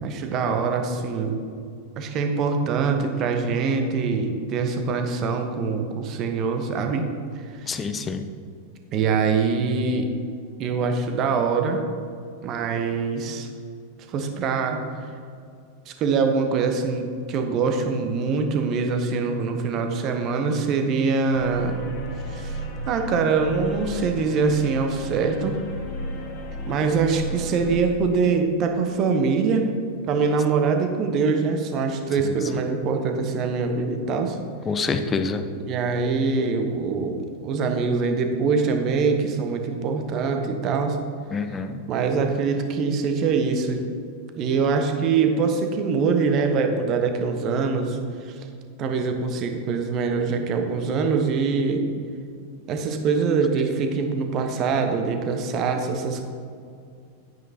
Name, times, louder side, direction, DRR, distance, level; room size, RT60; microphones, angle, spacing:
voice 1, 0.0-1.4 2.0-7.1 7.6-7.8 8.9-10.1 10.6-11.8 12.4-13.5 14.1-14.8 15.9-21.8 22.3-22.6 22.9-25.6 26.7-29.7 30.1-34.4 35.5-41.0 41.9-43.8 44.4-48.0 48.2-48.3 48.8-51.9 52.7-56.2, right 5 dB, 35° right, 5 dB, 1.0 m, -24 dB
voice 2, 7.7-8.3 34.7-35.4 41.3-41.8, left 4 dB, 20° left, 8 dB, 0.6 m, -26 dB
sound 1, 21.3-27.8, equal, 35° left, 1.6 m, -33 dB
10.5 x 9.2 x 2.9 m, 2.3 s
figure-of-eight pair, 90°, 0 cm